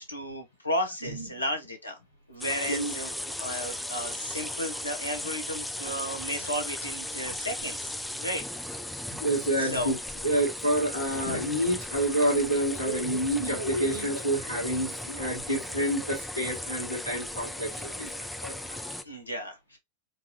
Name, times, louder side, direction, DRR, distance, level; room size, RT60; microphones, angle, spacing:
voice 1, 0.0-2.0 2.3-3.1 3.4-7.9 8.2-8.4 9.6-9.9 11.3-11.4 19.0-19.8, equal, 80° left, 1.1 m, -33 dB
sound 1, 2.4-19.0, left 1 dB, 5° left, 0.4 m, -37 dB
voice 2, 9.1-10.0 10.2-19.0, right 1 dB, 85° right, 1.8 m, -28 dB
4.5 x 2.6 x 2.9 m
figure-of-eight pair, 90°, 0 cm